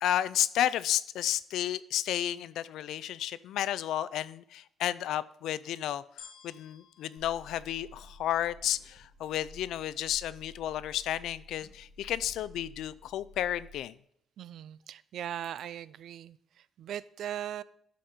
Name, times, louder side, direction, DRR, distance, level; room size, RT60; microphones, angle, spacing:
voice 1, 0.0-13.9, left 11 dB, 80° left, 17 dB, 0.4 m, -32 dB
sound 1, 6.2-8.6 9.2-9.3, left 7 dB, 65° left, 2.7 m, -54 dB
Car / Engine, 7.2-13.8, left 1 dB, 15° right, 1.8 m, -53 dB
voice 2, 14.4-17.6, right 10 dB, 60° right, 18 dB, 0.3 m, -39 dB
12.5 x 5.2 x 4.3 m, 0.70 s
cardioid pair, 170°, 0 cm